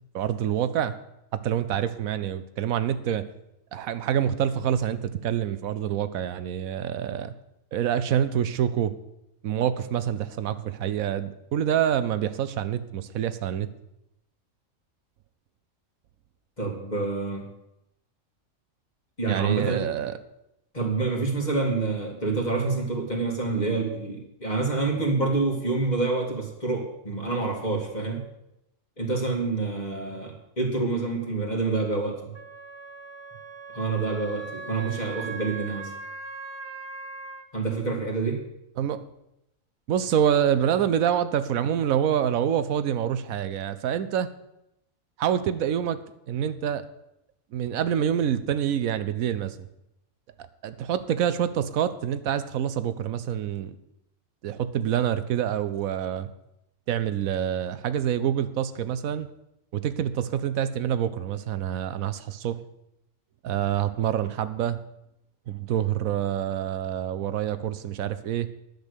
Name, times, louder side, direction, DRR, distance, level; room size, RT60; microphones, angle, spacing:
voice 1, 0.1-1.0 1.3-3.3 3.7-7.3 7.7-9.0 9.4-13.7 19.3-20.2 38.8-39.0 39.9-44.3 45.2-46.0 46.3-46.9 47.5-49.7 50.6-53.8 54.4-56.3 56.9-59.3 59.7-62.6 63.4-64.8 65.5-68.5, right 9 dB, 80° right, 13 dB, 1.1 m, -26 dB
voice 2, 16.6-17.5 19.2-19.9 20.7-28.2 29.0-32.3 33.7-35.9 37.5-38.4, right 3 dB, 30° left, 0 dB, 2.3 m, -27 dB
Wind instrument woodwind instrument, 32.3-37.4, right 4 dB, 35° right, 0.5 m, -39 dB
10.5 x 6.6 x 8.2 m, 0.84 s
omnidirectional pair, 1.4 m